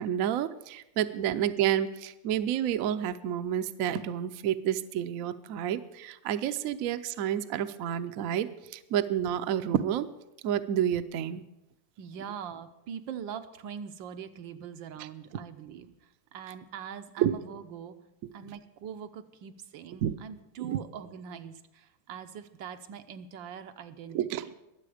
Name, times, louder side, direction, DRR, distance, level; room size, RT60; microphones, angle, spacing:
voice 1, 0.0-10.1 10.4-11.4 17.2-17.4 20.0-20.1 20.6-20.8 24.1-24.5, right 10 dB, 70° right, 11 dB, 0.8 m, -29 dB
voice 2, 12.0-15.9 16.3-18.0 18.3-24.2, right 8 dB, 85° right, 8 dB, 1.5 m, -42 dB
21.5 x 7.8 x 5.0 m, 0.92 s
omnidirectional pair, 2.0 m